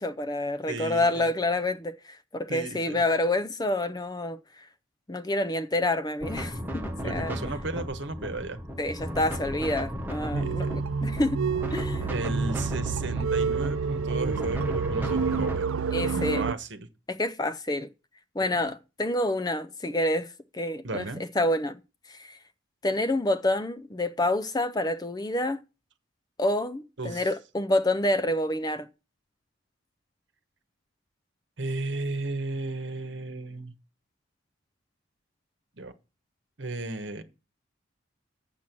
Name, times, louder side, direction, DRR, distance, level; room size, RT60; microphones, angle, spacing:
voice 1, 0.0-4.7 5.1-7.5 8.8-11.4 11.7-12.1 15.9-16.4 17.1-17.9 18.3-21.1 21.4-21.8 22.1-22.4 22.8-25.6 26.4-28.9, left 1 dB, 20° left, 0.5 m, -28 dB
voice 2, 0.7-1.3 2.5-3.0 7.0-8.6 10.3-10.8 12.1-15.7 16.0-16.9 18.4-18.7 20.8-21.2 27.0-27.3 31.6-33.7 35.8-35.9 36.6-37.2, right 2 dB, 60° right, 1.3 m, -34 dB
sound 1, 6.2-15.6, equal, 10° right, 1.1 m, -35 dB
sound 2, 10.3-16.5, right 5 dB, 85° right, 0.5 m, -28 dB
7.4 x 7.4 x 6.0 m
head